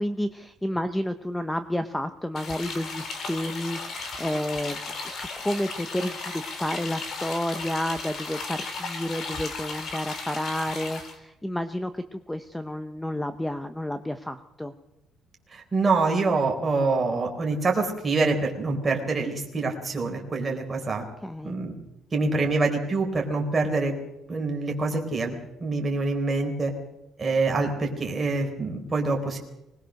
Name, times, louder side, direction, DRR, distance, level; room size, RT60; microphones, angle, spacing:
voice 1, 0.0-4.8 5.0-14.7 21.2-21.5, left 1 dB, 5° left, 9 dB, 0.8 m, -30 dB
sound 1, 2.3-11.1, left 3 dB, 40° left, 3.6 m, -35 dB
voice 2, 15.5-21.0 21.4-21.7 22.1-23.9 24.3-26.7 27.2-29.4, right 3 dB, 20° right, 1 dB, 4.2 m, -25 dB
24.5 x 20.0 x 6.5 m, 0.91 s
cardioid pair, 170°, 0 cm